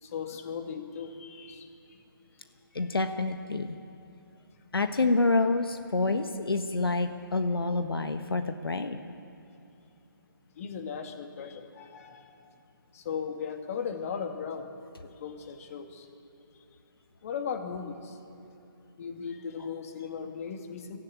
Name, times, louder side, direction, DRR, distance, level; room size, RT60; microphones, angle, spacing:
voice 1, 0.0-2.0 2.7-2.9 10.6-12.5 12.9-14.7 15.0-16.1 16.5-16.6 17.2-18.2 19.0-21.0, left 6 dB, 40° left, 5 dB, 2.1 m, -37 dB
voice 2, 2.7-3.8 4.7-9.0, left 3 dB, 80° left, 8 dB, 1.3 m, -27 dB
24.0 x 15.0 x 8.7 m, 2.8 s
figure-of-eight pair, 150°, 12 cm